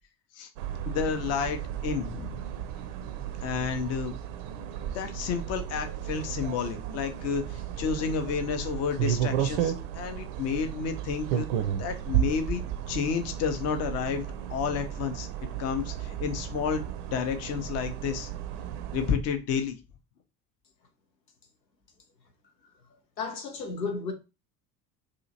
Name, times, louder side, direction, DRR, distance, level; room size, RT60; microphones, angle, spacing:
sound 1, 0.6-19.2, right 10 dB, 50° right, 0.5 m, -33 dB
voice 1, 0.8-2.4 3.4-4.1 4.9-11.5 11.8-15.3 15.6-18.3 18.9-19.8, left 6 dB, 30° left, 0.5 m, -31 dB
voice 2, 23.2-24.1, left 4 dB, 85° left, 0.7 m, -33 dB
2.8 x 2.5 x 2.7 m
figure-of-eight pair, 65°, 49 cm